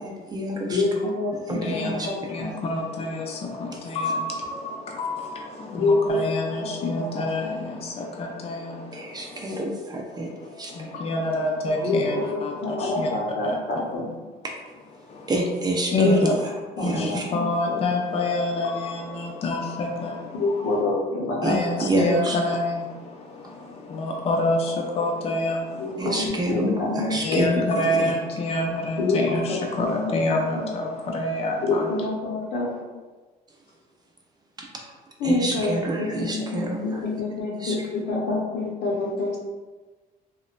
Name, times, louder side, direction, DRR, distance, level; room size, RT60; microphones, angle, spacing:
voice 1, 0.0-0.8 1.3-2.1 3.7-3.8 8.9-10.3 10.6-11.0 14.4-14.5 15.3-16.3 16.8-17.2 21.4-22.4 26.0-28.1 34.6-34.7 35.2-37.0 37.5-37.8, right 1 dB, 25° right, -1 dB, 0.4 m, -28 dB
voice 2, 0.7-2.7 5.7-7.6 11.8-14.2 15.9-16.3 16.8-17.8 20.3-21.9 25.7-27.7 29.0-30.7 31.6-32.8 35.2-39.4, left 2 dB, 70° left, -2 dB, 0.7 m, -27 dB
voice 3, 1.6-8.8 10.8-13.1 13.4-13.6 15.9-16.4 16.8-20.2 20.5-20.6 21.4-22.9 23.9-25.7 27.2-31.9, left 2 dB, 35° left, 0 dB, 0.4 m, -27 dB
3.0 x 2.1 x 2.4 m, 1.3 s
cardioid pair, 110°, 17 cm